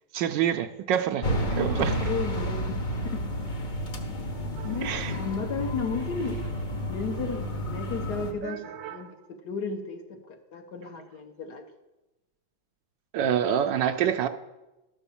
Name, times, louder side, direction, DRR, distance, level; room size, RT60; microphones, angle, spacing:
voice 1, 0.1-1.3 1.5-2.0 4.6-5.1 8.4-9.0 13.1-14.3, right 9 dB, 75° right, 8 dB, 1.1 m, -27 dB
sound 1, 1.2-8.3, equal, 40° left, 0.7 m, -31 dB
voice 2, 2.0-3.3 4.6-6.4 6.9-11.7, left 4 dB, 60° left, 5 dB, 1.4 m, -34 dB
12.5 x 5.9 x 7.0 m, 1.0 s
omnidirectional pair, 2.2 m